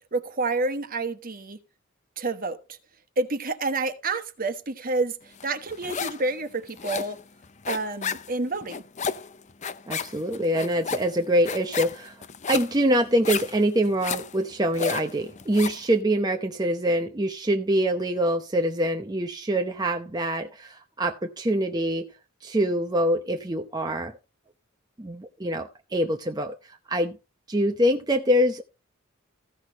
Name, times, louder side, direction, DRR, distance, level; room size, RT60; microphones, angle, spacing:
voice 1, 0.1-1.6 2.2-2.6 3.2-5.2 5.4-7.2 7.7-8.8, right 3 dB, 40° right, 1.3 m, -28 dB
sound 1, 5.4-6.3 6.5-15.9, left 6 dB, 35° left, 0.6 m, -33 dB
voice 2, 9.9-22.1 22.4-24.1 25.0-27.2 27.5-28.6, equal, 20° right, 0.7 m, -25 dB
15.5 x 6.3 x 4.0 m
head